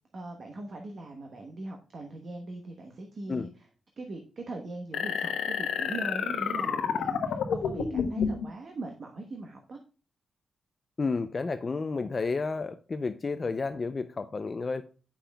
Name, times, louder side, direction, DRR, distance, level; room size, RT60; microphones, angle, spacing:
voice 1, 0.1-3.7 4.0-9.8, right 2 dB, 45° right, 3 dB, 1.0 m, -41 dB
sound 1, 4.9-8.5, left 6 dB, 90° left, 1.0 m, -29 dB
voice 2, 11.0-14.8, left 4 dB, 30° left, 9 dB, 0.4 m, -31 dB
8.5 x 5.8 x 2.2 m, 0.37 s
wide cardioid pair, 140°, 0 cm